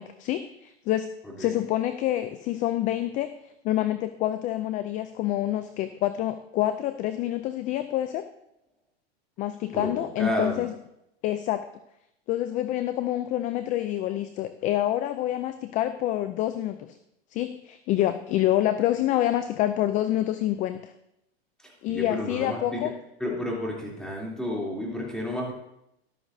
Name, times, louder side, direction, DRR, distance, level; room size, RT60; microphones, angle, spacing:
voice 1, 0.0-1.1 1.4-3.3 3.6-8.3 9.4-10.7 11.2-11.6 12.3-17.0 17.3-20.9 21.8-22.9, left 13 dB, 25° left, 11 dB, 0.4 m, -27 dB
voice 2, 1.2-1.5 9.7-10.6 21.6-22.9 23.2-25.5, left 1 dB, ahead, -3 dB, 3.0 m, -31 dB
13.5 x 12.0 x 2.7 m, 0.81 s
supercardioid pair, 130°, 32 cm